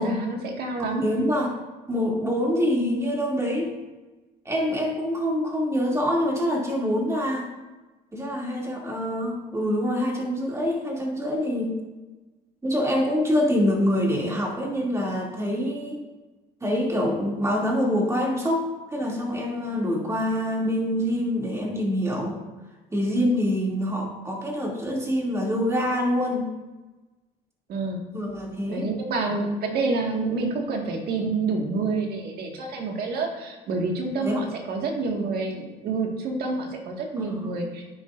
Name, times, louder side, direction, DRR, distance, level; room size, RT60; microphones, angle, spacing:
voice 1, 0.0-1.1 27.7-28.0 28.7-37.8, right 3 dB, 65° right, 1 dB, 1.9 m, -28 dB
voice 2, 0.9-1.5 1.9-3.7 4.4-7.5 8.1-11.8 12.6-16.0 16.6-22.4 22.9-26.5 28.1-28.9 34.2-34.4 37.2-37.6, equal, 15° right, -3 dB, 2.7 m, -25 dB
10.5 x 8.4 x 2.6 m, 1.2 s
cardioid pair, 110°, 17 cm